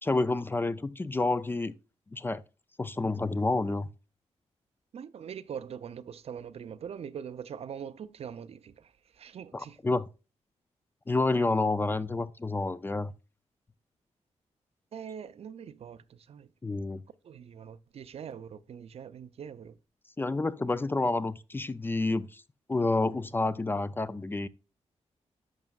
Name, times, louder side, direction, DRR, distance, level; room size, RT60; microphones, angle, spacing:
voice 1, 0.0-1.7 2.1-2.4 2.8-3.9 9.5-10.1 11.1-13.1 16.6-17.0 20.2-22.4 22.7-24.5, left 2 dB, 20° left, 0.3 m, -29 dB
voice 2, 4.9-9.8 14.9-16.5 17.2-19.8, right 8 dB, 60° right, 0.5 m, -43 dB
11.0 x 6.1 x 2.3 m
wide cardioid pair, 120°, 12 cm